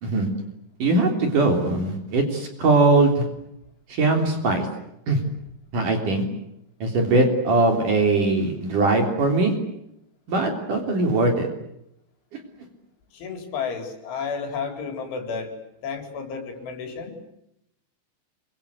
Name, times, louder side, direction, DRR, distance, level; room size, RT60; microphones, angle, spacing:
voice 1, 0.8-3.3 3.9-4.7 5.1-5.2 5.7-6.2 6.8-9.5 10.3-11.5 12.3-12.4, right 2 dB, 45° right, 4 dB, 4.7 m, -21 dB
voice 2, 13.1-15.5 15.8-17.1, left 5 dB, 75° left, 5 dB, 6.6 m, -31 dB
27.5 x 24.0 x 8.3 m, 0.81 s
omnidirectional pair, 5.5 m